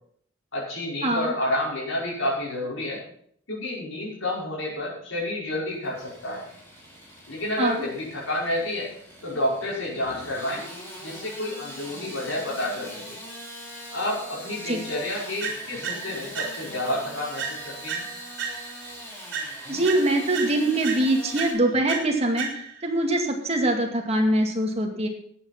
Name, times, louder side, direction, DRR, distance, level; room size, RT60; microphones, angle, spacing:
voice 1, 0.5-3.0 3.5-6.5 7.3-8.9 9.2-10.6 11.0-13.2 13.9-18.0, left 1 dB, 75° left, -5 dB, 5.6 m, -29 dB
Engine starting / Sawing, 5.7-21.5, equal, 15° left, 4.9 m, -42 dB
sound 1, 15.4-16.9 17.4-18.9 19.3-22.9, right 6 dB, 60° right, 3.7 m, -34 dB
voice 2, 19.7-22.5 22.8-25.1, right 1 dB, 30° right, 2 dB, 2.2 m, -23 dB
13.5 x 8.8 x 5.9 m, 0.63 s
head